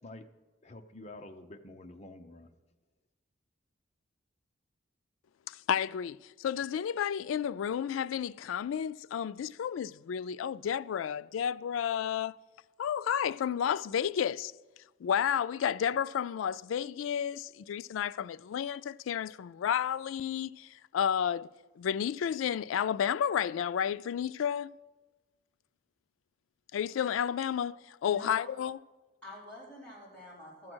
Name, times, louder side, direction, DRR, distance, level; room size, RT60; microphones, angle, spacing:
voice 1, 0.6-2.5, left 2 dB, 35° left, 0.7 m, -48 dB
voice 2, 5.5-12.3 12.8-14.5 15.0-20.7 20.9-21.5 21.8-24.7 26.7-28.8, left 8 dB, 90° left, 0.3 m, -31 dB
voice 3, 28.0-28.5 29.2-30.7, left 1 dB, 5° left, 4.1 m, -47 dB
12.5 x 7.5 x 6.2 m
head